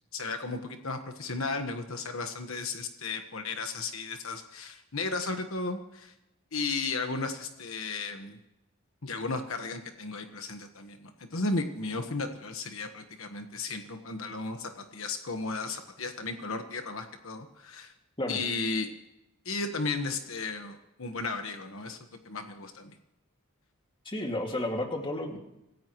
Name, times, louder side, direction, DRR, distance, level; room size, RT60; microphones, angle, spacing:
voice 1, 0.1-6.1 6.5-8.4 9.0-17.9 18.3-18.9 19.4-23.0, left 3 dB, 65° left, 6 dB, 1.3 m, -34 dB
voice 2, 24.1-25.4, left 1 dB, 25° left, 2 dB, 2.2 m, -32 dB
26.5 x 16.0 x 3.1 m, 0.90 s
head